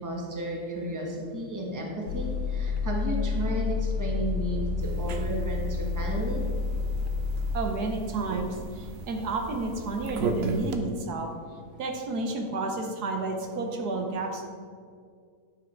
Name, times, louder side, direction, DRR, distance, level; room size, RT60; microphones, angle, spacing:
voice 1, 0.0-6.4, right 1 dB, 10° right, -1 dB, 1.2 m, -33 dB
sound 1, 2.1-7.6, left 4 dB, 90° left, 1.2 m, -29 dB
sound 2, 4.8-10.8, right 3 dB, 55° right, 0.7 m, -37 dB
voice 2, 7.5-11.3 11.8-14.4, right 3 dB, 70° right, 3 dB, 1.4 m, -31 dB
9.7 x 6.2 x 4.5 m, 2.1 s
omnidirectional pair, 1.8 m